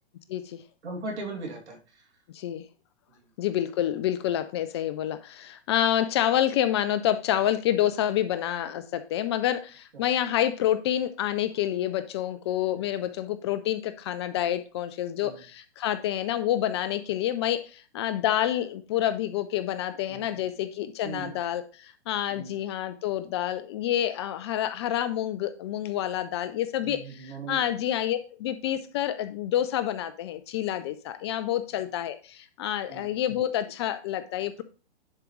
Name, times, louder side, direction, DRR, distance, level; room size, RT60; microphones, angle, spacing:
voice 1, 0.3-0.6 2.3-2.6 3.4-34.6, left 11 dB, 25° left, 12 dB, 0.4 m, -28 dB
voice 2, 0.8-2.1 3.1-3.2 9.9-10.0 15.2-15.4 20.1-20.6 21.0-21.3 22.3-22.6 26.8-27.9 32.9-33.1, right 3 dB, 80° right, 1 dB, 2.7 m, -39 dB
10.5 x 4.9 x 3.1 m, 0.36 s
hypercardioid pair, 125°, 33 cm